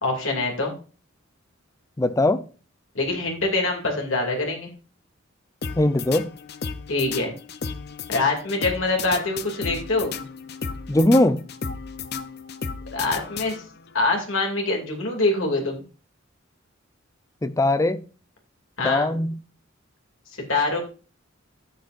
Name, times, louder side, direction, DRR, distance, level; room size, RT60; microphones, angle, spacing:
voice 1, 0.0-0.7 2.9-4.7 6.9-7.3 8.1-10.1 12.9-13.6 13.9-15.8 18.8-19.1 20.5-20.8, left 2 dB, 80° left, 2.6 m, -24 dB
voice 2, 2.0-2.4 5.8-6.3 10.9-11.4 17.4-18.0 18.8-19.4, left 1 dB, 15° left, 0.5 m, -20 dB
sound 1, 5.6-13.9, left 5 dB, 55° left, 0.7 m, -34 dB
12.5 x 7.9 x 2.6 m
head